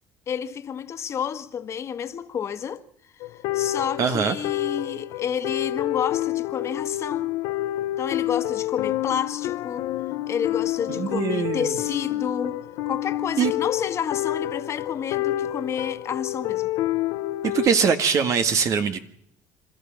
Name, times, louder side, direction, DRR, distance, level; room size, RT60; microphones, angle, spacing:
voice 1, 0.3-2.8 3.2-7.3 8.0-9.9 10.3-16.7, left 8 dB, 40° left, 1.7 m, -30 dB
sound 1, 3.2-17.7, left 14 dB, 75° left, 1.0 m, -28 dB
voice 2, 4.0-4.4 11.0-11.8 13.4-13.5 17.4-19.0, right 6 dB, 50° right, 1.7 m, -22 dB
27.0 x 13.0 x 7.3 m
cardioid pair, 115°, 7 cm